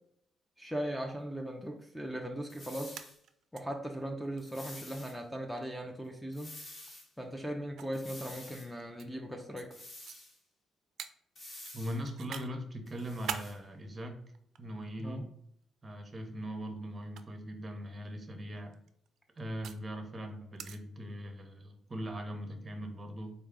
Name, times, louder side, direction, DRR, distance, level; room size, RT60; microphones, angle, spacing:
voice 1, 0.6-3.0 3.5-6.5 7.2-9.7 15.0-15.2, equal, 5° left, 2 dB, 0.5 m, -38 dB
sound 1, 2.5-3.2 4.4-5.2 6.3-7.1 7.9-8.7 9.7-10.4 11.4-12.0 12.9-13.6, left 1 dB, 35° left, 1.3 m, -49 dB
sound 2, 3.0-3.6 3.9-4.0 4.4-4.5 5.6-5.8 6.9-7.0 7.8-9.1 9.6-9.7 10.0-10.2 11.0-11.1 11.7-12.5 12.9-13.5 14.3-15.1 16.1-16.4 17.0-17.2 18.6-19.8 20.6-20.8, right 8 dB, 70° right, 0.3 m, -42 dB
voice 2, 11.7-14.2 14.6-15.3 15.8-18.7 19.4-23.3, equal, 30° right, 5 dB, 0.8 m, -40 dB
4.0 x 2.2 x 3.6 m, 0.69 s
cardioid pair, 90°, 0 cm